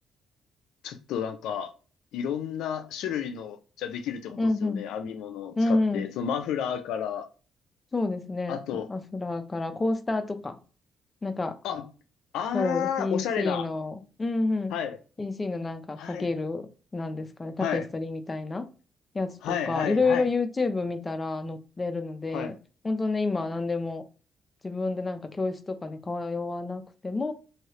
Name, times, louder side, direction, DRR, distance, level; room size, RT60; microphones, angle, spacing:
voice 1, 0.8-1.7 2.1-7.3 8.5-8.9 11.6-11.8 12.3-13.7 14.7-15.0 16.0-16.3 17.6-17.9 19.4-20.3 22.3-22.5, left 8 dB, 90° left, 0.4 m, -31 dB
voice 2, 4.4-4.9 5.6-6.1 7.9-10.6 11.2-11.6 12.5-14.7 15.2-16.7 16.9-18.7 19.1-22.6 22.8-24.0 24.6-27.3, left 3 dB, 25° left, 0.5 m, -29 dB
3.2 x 2.7 x 2.9 m
cardioid pair, 90°, 0 cm